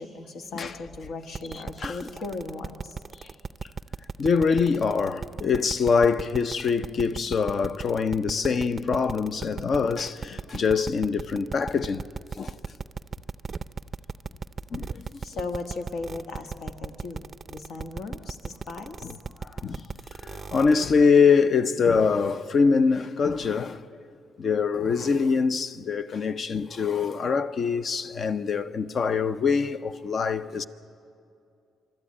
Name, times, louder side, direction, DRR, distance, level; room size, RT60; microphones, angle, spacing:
voice 1, 0.0-3.0 15.2-19.1, left 3 dB, 75° left, 1.5 m, -37 dB
sound 1, 1.3-20.8, right 5 dB, 35° right, 0.4 m, -36 dB
voice 2, 1.5-2.0 4.2-12.1 12.4-12.6 14.7-15.1 19.0-19.1 19.4-19.8 20.2-23.8 24.4-30.6, left 5 dB, 50° left, 0.7 m, -24 dB
25.0 x 13.0 x 8.8 m
cardioid pair, 90°, 0 cm